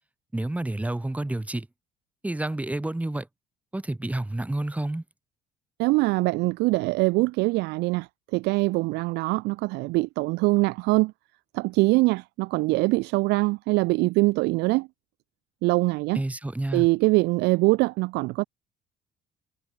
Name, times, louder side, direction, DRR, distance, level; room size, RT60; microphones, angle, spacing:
voice 1, 0.3-1.7 2.2-3.3 3.7-5.0 16.1-16.9, right 1 dB, 10° right, 1.8 m, -29 dB
voice 2, 5.8-11.1 11.5-14.9 15.6-16.2 16.7-18.4, right 23 dB, 85° right, 0.4 m, -23 dB
cardioid pair, 110°, 17 cm